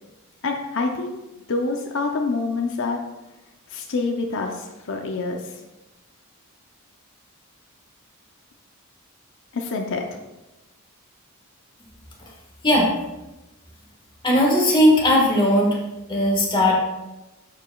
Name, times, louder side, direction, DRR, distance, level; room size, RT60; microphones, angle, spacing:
voice 1, 0.4-1.2 1.5-3.0 3.7-5.6 9.5-10.2, left 3 dB, 60° left, 2 dB, 0.6 m, -26 dB
voice 2, 14.2-15.7 16.1-16.7, left 1 dB, 20° left, -2 dB, 1.6 m, -17 dB
12.0 x 4.9 x 2.3 m, 1.0 s
head